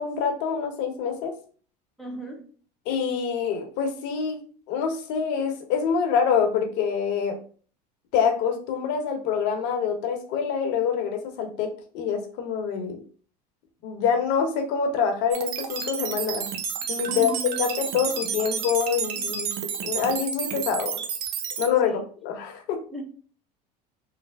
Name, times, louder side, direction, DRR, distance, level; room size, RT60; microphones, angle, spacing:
voice 1, 0.0-1.3 2.9-4.4 4.7-7.4 8.1-13.0 13.8-16.5 16.9-17.3 17.6-19.5 19.8-21.0 21.6-22.8, left 6 dB, 65° left, 0.9 m, -26 dB
voice 2, 2.0-2.5 17.1-17.6 21.8-22.0 22.9-23.0, right 2 dB, ahead, 0.8 m, -35 dB
sound 1, 15.3-21.7, right 7 dB, 80° right, 0.6 m, -31 dB
3.2 x 2.1 x 3.4 m
supercardioid pair, 105°, 20 cm